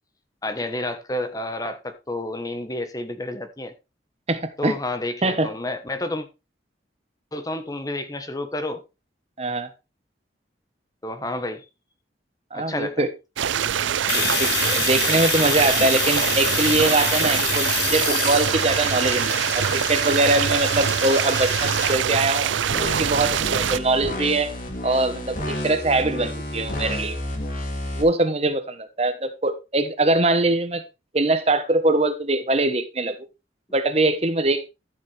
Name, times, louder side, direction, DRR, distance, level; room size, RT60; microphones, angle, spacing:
voice 1, 0.4-3.7 4.6-6.3 7.3-8.8 11.0-11.7 12.5-13.0, left 1 dB, 20° left, 1.2 m, -30 dB
voice 2, 4.3-4.8 5.2-5.5 9.4-9.7 12.5-13.1 14.1-22.5 22.8-24.5 24.8-27.2 28.0-30.8 31.1-33.2 33.7-34.6, right 2 dB, 35° right, 1.2 m, -22 dB
sound 1, 13.4-23.8, right 8 dB, 90° right, 0.5 m, -24 dB
Domestic sounds home sounds, 14.1-21.9, left 5 dB, 70° left, 5.3 m, -27 dB
sound 2, 22.7-28.0, left 1 dB, 45° left, 3.1 m, -31 dB
13.5 x 7.2 x 3.4 m
head